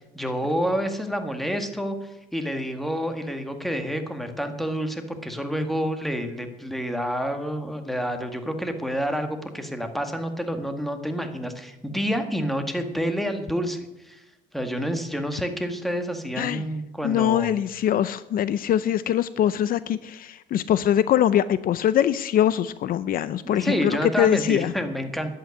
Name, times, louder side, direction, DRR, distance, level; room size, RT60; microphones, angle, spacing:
voice 1, 0.0-14.2 14.5-17.5 23.4-25.3, equal, ahead, 6 dB, 1.8 m, -28 dB
voice 2, 17.0-24.7, left 10 dB, 60° left, 15 dB, 0.6 m, -23 dB
11.0 x 8.7 x 9.8 m, 0.99 s
cardioid pair, 110°, 17 cm